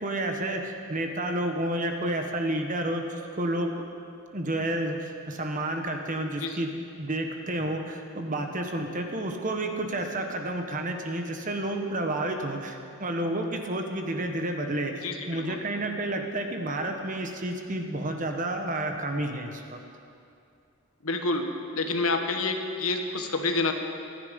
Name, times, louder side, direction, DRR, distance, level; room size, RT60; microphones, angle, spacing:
voice 1, 0.0-3.7 4.3-6.7 7.0-19.8, right 1 dB, 35° right, 4 dB, 1.3 m, -30 dB
voice 2, 15.0-15.6 21.0-21.5 21.7-23.7, left 3 dB, 75° left, 5 dB, 1.4 m, -28 dB
26.5 x 10.5 x 5.3 m, 2.5 s
head